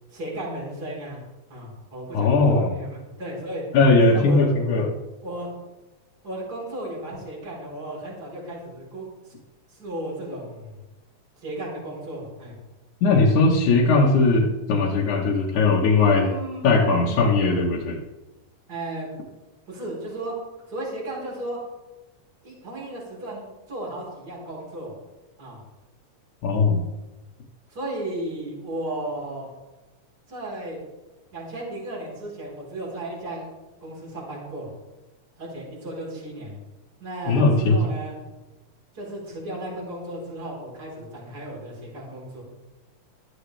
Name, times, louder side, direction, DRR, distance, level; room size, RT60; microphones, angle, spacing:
voice 1, 0.1-1.2 1.5-3.6 4.0-4.7 5.2-5.5 6.2-9.3 9.7-10.7 11.4-12.5 16.1-17.3 18.7-19.1 19.7-20.3 20.7-21.6 22.4-24.9 25.4-25.6 27.7-29.5 30.3-30.8 31.3-33.5 33.8-34.7 35.4-36.5 37.0-38.1 38.9-42.4, right 1 dB, 30° right, -4 dB, 4.8 m, -35 dB
voice 2, 2.1-2.7 3.7-4.9 13.0-16.3 16.6-18.0 26.4-26.8 37.3-37.8, left 3 dB, 75° left, -4 dB, 2.9 m, -19 dB
15.0 x 14.0 x 3.4 m, 1.1 s
omnidirectional pair, 3.5 m